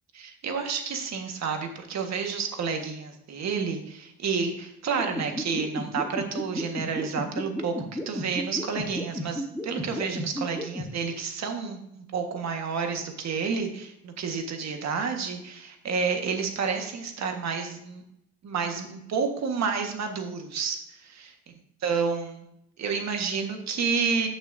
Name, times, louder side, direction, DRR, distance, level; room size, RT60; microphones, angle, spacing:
voice 1, 0.1-18.0 18.4-21.3 21.8-22.4 22.8-24.3, right 5 dB, 60° right, 4 dB, 1.6 m, -30 dB
sound 1, 5.0-10.8, left 1 dB, 5° left, 1.3 m, -32 dB
13.5 x 6.1 x 2.7 m, 0.79 s
cardioid pair, 90°, 30 cm